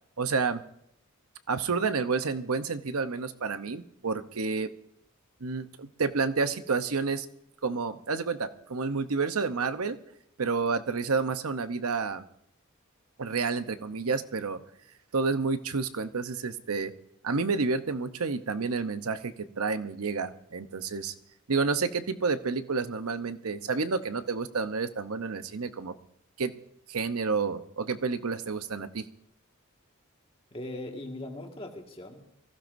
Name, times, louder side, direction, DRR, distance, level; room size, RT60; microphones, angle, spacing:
voice 1, 0.2-0.6 1.5-4.7 5.4-7.3 7.6-10.0 10.4-12.2 13.2-14.6 15.1-16.9 17.2-21.1 21.5-25.9 26.4-26.5 26.9-29.0, right 4 dB, 80° right, 10 dB, 0.8 m, -30 dB
voice 2, 30.5-32.2, left 1 dB, 25° left, 2 dB, 1.9 m, -39 dB
24.0 x 15.5 x 2.6 m, 0.76 s
head